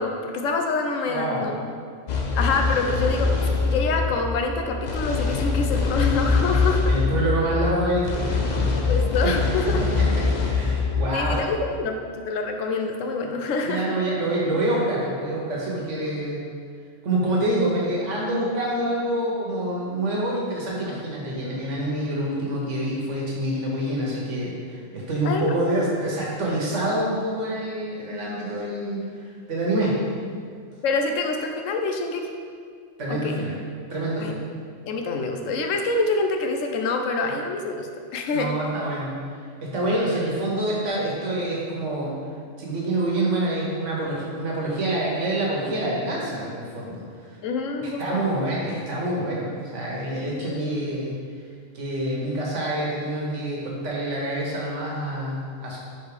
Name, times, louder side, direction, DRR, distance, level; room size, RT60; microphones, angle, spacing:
voice 1, 0.0-1.5 2.3-3.3 3.6-6.8 8.8-9.8 11.1-14.0 20.8-21.0 25.2-25.8 30.8-32.2 33.1-33.4 34.2-34.4 34.9-38.6 47.4-48.2 50.4-50.8, left 3 dB, 90° left, 4 dB, 1.0 m, -26 dB
voice 2, 1.1-1.4 6.9-9.0 9.2-9.3 9.8-11.4 13.6-16.4 17.0-30.0 33.0-33.5 33.9-34.4 38.3-39.2 39.6-42.1 42.6-47.0 48.0-51.2 51.7-55.8, right 1 dB, 70° right, -4 dB, 1.5 m, -26 dB
sound 1, 2.1-11.4, left 4 dB, 50° left, 0.5 m, -24 dB
5.1 x 3.9 x 4.8 m, 2.1 s
omnidirectional pair, 1.3 m